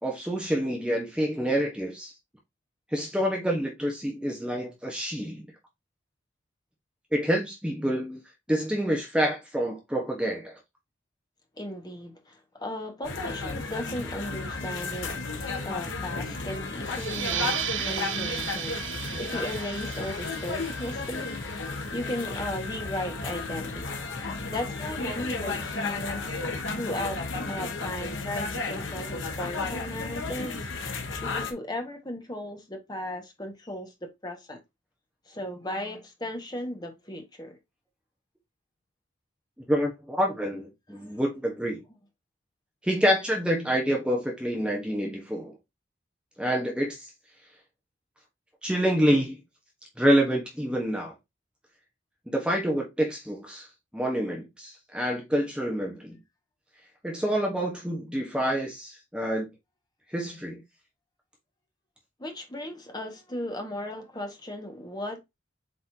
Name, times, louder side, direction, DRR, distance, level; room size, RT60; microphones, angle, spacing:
voice 1, 0.0-2.1 2.9-5.4 7.1-8.2 8.5-10.6 39.7-41.8 42.8-45.5 46.4-47.1 48.6-49.4 50.0-51.1 52.3-53.7 53.9-56.2 57.0-59.5 60.1-60.6, equal, 5° right, 1.3 m, -27 dB
voice 2, 11.6-15.1 15.4-21.4 21.9-24.1 24.5-26.3 26.7-27.2 27.5-30.7 30.9-33.9 34.2-34.6 35.3-37.6 40.9-41.2 62.2-65.2, left 1 dB, 20° left, 1.7 m, -36 dB
sound 1, 13.0-31.5, left 3 dB, 75° left, 1.6 m, -33 dB
sound 2, 16.8-22.1, right 10 dB, 75° right, 0.7 m, -35 dB
7.9 x 4.2 x 2.8 m
head